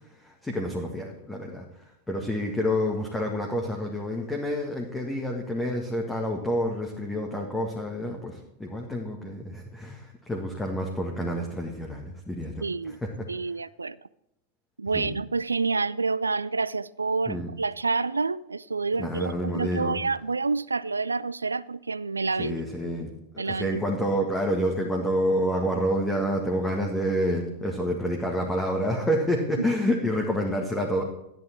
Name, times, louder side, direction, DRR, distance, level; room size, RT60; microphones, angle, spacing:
voice 1, 0.2-1.6 2.1-12.6 13.0-13.1 14.9-15.1 17.3-17.5 19.0-20.0 22.4-23.1 23.4-31.0, equal, 10° left, 1.8 m, -28 dB
voice 2, 12.6-13.0 13.3-14.0 14.8-22.6 23.4-23.8 29.6-29.7, right 4 dB, 80° right, 0.4 m, -28 dB
13.5 x 10.5 x 4.5 m
figure-of-eight pair, 90°, 0 cm